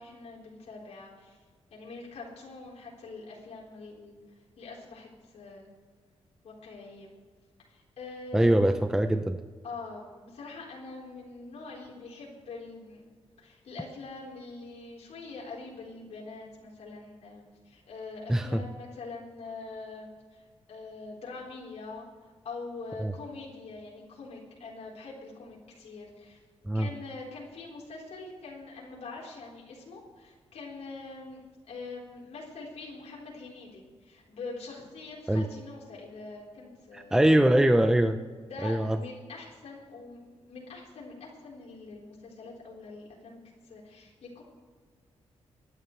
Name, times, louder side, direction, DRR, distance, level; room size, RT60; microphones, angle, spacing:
voice 1, 0.0-1.4 1.7-4.1 4.6-5.7 6.4-7.1 7.6-8.6 9.6-13.1 13.4-20.1 20.3-20.4 20.7-26.4 26.7-31.4 31.7-37.2 38.4-44.4, left 3 dB, 75° left, -4 dB, 4.2 m, -44 dB
voice 2, 8.3-9.4 18.3-18.6 23.0-23.1 26.7-26.9 35.3-35.4 36.9-38.2 38.6-39.0, right 1 dB, 5° right, 7 dB, 0.6 m, -23 dB
24.5 x 11.5 x 3.3 m, 1.5 s
wide cardioid pair, 150°, 11 cm